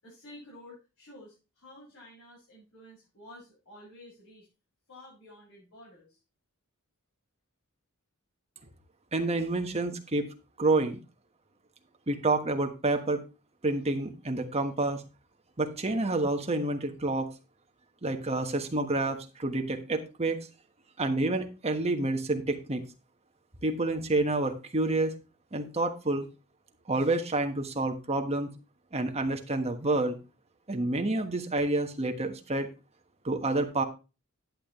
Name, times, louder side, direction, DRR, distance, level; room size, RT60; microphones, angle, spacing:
voice 1, 0.0-4.5 4.9-6.2, left 1 dB, 70° left, -6 dB, 6.6 m, -51 dB
voice 2, 9.1-10.3 10.6-11.0 12.1-13.2 13.6-15.0 15.6-17.3 18.0-20.4 21.0-22.8 23.6-25.1 25.5-26.3 26.9-28.5 28.9-30.2 30.7-32.7 33.2-33.8, right 2 dB, 30° right, 5 dB, 1.4 m, -28 dB
11.0 x 8.6 x 3.1 m, 0.30 s
head